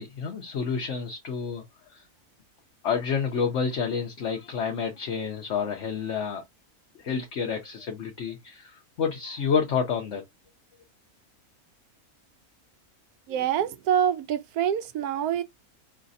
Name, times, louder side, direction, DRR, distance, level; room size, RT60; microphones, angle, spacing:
voice 1, 0.0-1.6 1.9-2.0 2.8-6.4 7.0-10.2, left 6 dB, 55° left, 1.0 m, -29 dB
voice 2, 13.3-15.4, right 9 dB, 85° right, 1.2 m, -26 dB
5.1 x 3.3 x 2.6 m
omnidirectional pair, 1.6 m